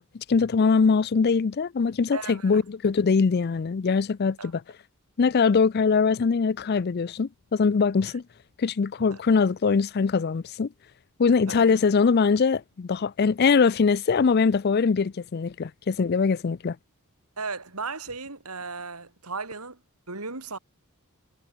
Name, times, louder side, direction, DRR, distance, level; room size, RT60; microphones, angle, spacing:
voice 1, 0.0-4.6 5.2-8.2 8.6-10.7 11.2-16.8, left 5 dB, 45° left, 0.4 m, -22 dB
voice 2, 2.1-2.6 4.4-4.5 9.1-9.2 11.5-11.8 17.4-19.8 20.1-20.6, right 4 dB, 85° right, 4.7 m, -36 dB
head